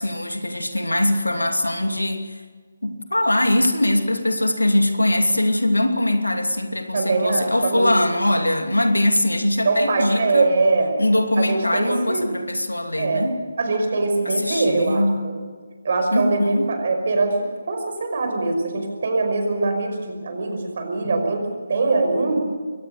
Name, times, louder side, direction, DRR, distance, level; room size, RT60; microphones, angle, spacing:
voice 1, 0.0-2.4 2.8-10.5 11.0-13.4 14.2-15.2 16.1-16.7, left 1 dB, 90° left, 6 dB, 2.8 m, -21 dB
voice 2, 6.9-8.4 9.6-10.9 11.4-12.3 12.9-13.2 13.6-15.4 15.8-17.4 17.6-22.4, right 3 dB, 50° right, 4 dB, 5.5 m, -22 dB
22.5 x 18.5 x 6.8 m, 1.5 s
figure-of-eight pair, 150°, 0 cm